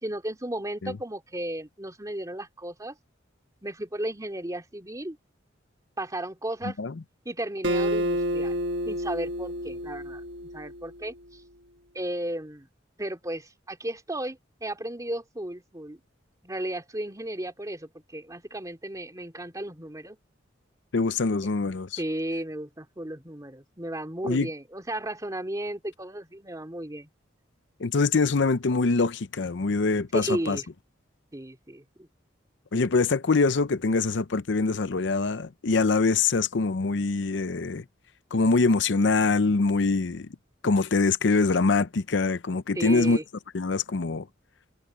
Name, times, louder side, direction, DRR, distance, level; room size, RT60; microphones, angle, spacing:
voice 1, 0.0-3.0 3.6-5.2 6.0-6.8 7.2-8.5 8.8-11.1 11.9-12.7 13.0-16.0 16.4-20.2 22.0-27.1 30.1-30.7 31.3-32.1 42.7-43.2, right 1 dB, 20° right, 2.7 m, -34 dB
Acoustic guitar, 7.6-11.1, equal, 70° right, 1.1 m, -29 dB
voice 2, 20.9-22.0 24.2-24.5 27.8-30.6 32.7-37.8 38.3-40.3 40.6-43.2 43.5-44.3, left 3 dB, 70° left, 0.6 m, -24 dB
head